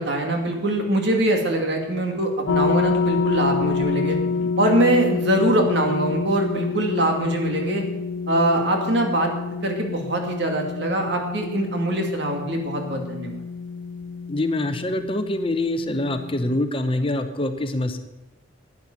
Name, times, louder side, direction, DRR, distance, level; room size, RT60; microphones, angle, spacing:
voice 1, 0.0-4.2 4.6-7.8 8.3-9.3 9.6-13.4, right 1 dB, 60° right, 2 dB, 2.3 m, -23 dB
sound 1, 2.5-16.6, left 5 dB, 70° left, 0.3 m, -28 dB
voice 2, 14.3-18.0, left 1 dB, 30° left, 8 dB, 0.8 m, -25 dB
11.5 x 9.7 x 7.2 m, 1.0 s
head